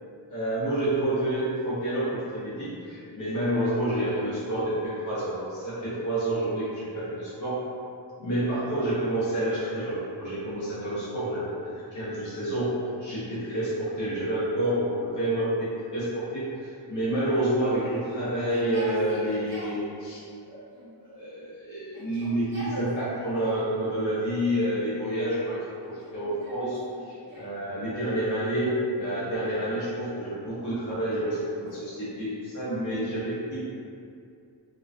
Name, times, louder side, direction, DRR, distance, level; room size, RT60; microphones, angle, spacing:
voice 1, 0.3-7.6 8.2-20.6 21.1-26.8 27.1-33.6, right 1 dB, 45° left, -11 dB, 0.7 m, -29 dB
Yell, 17.4-19.8 20.7-21.5 21.8-23.7 24.5-25.1 25.8-27.6 29.0-29.9 30.7-32.4, right 1 dB, 30° right, 0.7 m, -45 dB
2.3 x 2.2 x 2.4 m, 2.4 s
wide cardioid pair, 145°, 44 cm